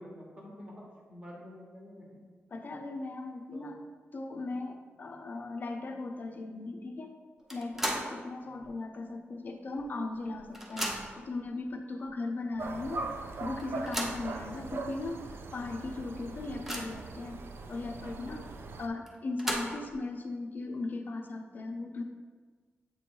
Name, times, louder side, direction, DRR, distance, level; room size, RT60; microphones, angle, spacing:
voice 1, 0.0-2.2 3.5-3.7 5.0-5.1 8.4-8.7 14.2-14.6, equal, 25° right, -3 dB, 1.2 m, -49 dB
voice 2, 2.5-3.8 4.1-7.1 7.5-13.0 13.4-15.2 15.5-17.4 17.7-18.5 18.8-22.0, left 2 dB, 40° left, 5 dB, 0.5 m, -38 dB
sound 1, 7.5-8.2 8.6-8.7 9.8-9.9 10.2-11.3 12.0-12.1 12.5-12.6 13.6-14.3 15.0-15.1 15.5-15.6 16.1-17.1 19.1-20.0, equal, 5° right, 0.6 m, -36 dB
sound 2, 12.6-18.9, right 3 dB, 60° right, 0.4 m, -41 dB
7.4 x 3.0 x 4.4 m, 1.6 s
wide cardioid pair, 150°, 5 cm